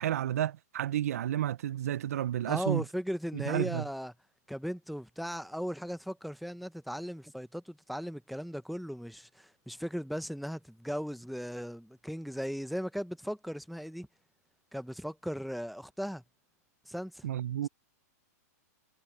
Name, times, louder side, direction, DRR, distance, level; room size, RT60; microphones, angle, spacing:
voice 1, 0.0-2.8 3.3-3.8 17.2-17.7, right 12 dB, 65° right, 0.4 m, -31 dB
voice 2, 2.5-4.1 4.5-14.1 14.7-16.2 16.9-17.3, equal, ahead, 0.5 m, -37 dB
supercardioid pair, 175°, 9 cm